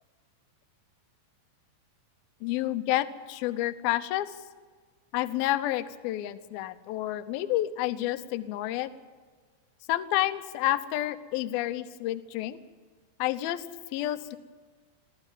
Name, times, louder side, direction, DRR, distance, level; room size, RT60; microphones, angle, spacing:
voice 1, 2.4-4.4 5.1-8.9 9.9-12.6 13.2-13.6 13.9-14.4, left 14 dB, 75° left, 11 dB, 2.3 m, -29 dB
22.5 x 15.0 x 9.1 m, 1.5 s
omnidirectional pair, 5.5 m